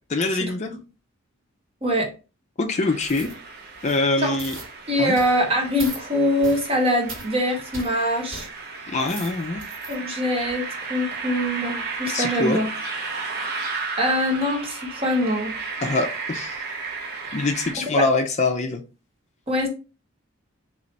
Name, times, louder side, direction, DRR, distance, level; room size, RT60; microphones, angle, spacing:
voice 1, 0.1-0.8 2.6-3.3 3.8-4.6 5.0-5.2 8.9-9.6 12.1-12.6 15.8-16.6 17.3-18.8, left 3 dB, 35° left, 0.4 m, -24 dB
voice 2, 1.8-2.1 4.2-4.4 4.9-8.5 9.9-12.7 14.0-15.5 17.8-18.0 19.5-19.7, equal, 30° right, 1.0 m, -23 dB
sound 1, 2.7-17.7, right 4 dB, 50° right, 0.8 m, -34 dB
sound 2, 3.0-3.4 3.7-4.1 4.4-4.7 5.2-5.4 5.8-6.0 6.4-6.7 7.1-7.3 7.7-7.9 8.3-8.5 8.9-10.0 10.4-10.5, right 2 dB, 75° right, 1.9 m, -38 dB
3.9 x 3.0 x 3.2 m
head